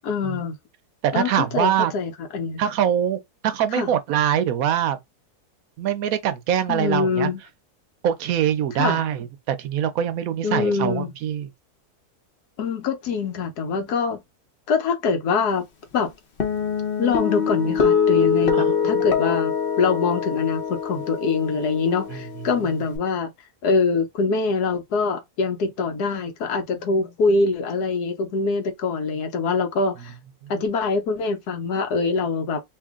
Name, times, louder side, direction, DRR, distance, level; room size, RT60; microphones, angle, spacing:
voice 1, 0.0-0.5 1.1-2.6 3.7-3.9 6.7-7.4 8.8-9.0 10.4-11.1 12.6-14.2 14.7-15.7 15.9-16.1 17.0-23.3 23.6-30.1 30.5-32.6, left 4 dB, 90° left, 1.4 m, -24 dB
voice 2, 1.0-1.9 2.6-5.0 5.8-7.3 8.0-11.5 18.5-19.0 22.1-22.3 30.4-30.5, right 9 dB, 70° right, 1.0 m, -23 dB
Guitar, 16.4-23.0, left 6 dB, 45° left, 0.8 m, -24 dB
2.9 x 2.6 x 3.5 m
omnidirectional pair, 1.6 m